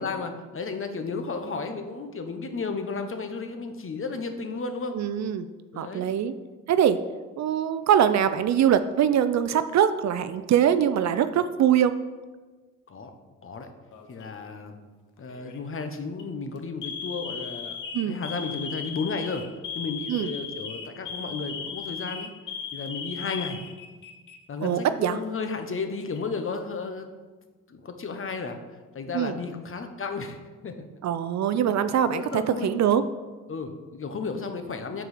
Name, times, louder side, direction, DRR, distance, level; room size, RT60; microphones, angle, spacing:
voice 1, 0.0-5.0 5.7-6.1 12.9-13.1 13.4-13.7 14.1-14.8 15.2-17.8 18.0-19.5 19.7-22.3 22.7-23.6 24.5-27.1 27.7-28.6 28.9-30.8 32.1-32.7 33.5-35.0, left 4 dB, 40° left, 6 dB, 0.9 m, -33 dB
voice 2, 4.9-5.5 5.8-6.3 6.7-7.0 7.4-11.9 17.9-18.2 20.1-20.3 24.6-25.2 29.1-29.3 31.0-33.0, right 9 dB, 55° right, 12 dB, 0.5 m, -23 dB
Alarm, 13.9-14.4 15.3-15.6 16.0-16.2 16.8-24.4 24.7-24.8 25.7-26.4, left 6 dB, 65° left, 0.8 m, -37 dB
6.1 x 4.7 x 5.0 m, 1.3 s
supercardioid pair, 60°, 33 cm